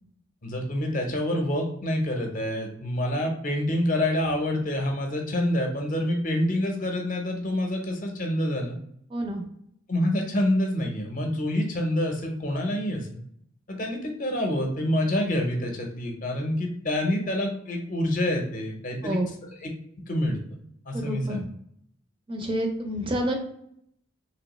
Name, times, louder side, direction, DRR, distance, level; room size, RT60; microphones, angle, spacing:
voice 1, 0.4-8.7 9.9-13.2 13.7-19.2 19.6-19.7 20.1-20.4 20.9-21.4, left 1 dB, 40° left, 2 dB, 0.6 m, -27 dB
voice 2, 9.1-9.4 19.0-19.3 20.9-21.4 22.3-23.4, right 1 dB, 25° right, 2 dB, 0.4 m, -28 dB
3.1 x 2.9 x 3.0 m, 0.70 s
head